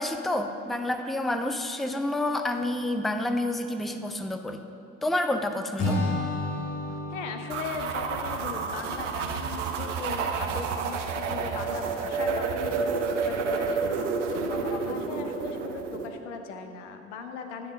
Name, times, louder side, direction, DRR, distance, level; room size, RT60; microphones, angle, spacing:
voice 1, 0.0-4.6 5.0-6.0, left 1 dB, ahead, 7 dB, 0.4 m, -29 dB
Acoustic guitar / Strum, 5.8-9.1, left 1 dB, 50° left, 1.5 m, -32 dB
voice 2, 7.1-17.7, left 5 dB, 80° left, 6 dB, 0.7 m, -38 dB
sound 1, 7.5-16.1, right 5 dB, 85° right, 0.6 m, -30 dB
9.2 x 3.8 x 6.5 m, 2.8 s
figure-of-eight pair, 45°, 36 cm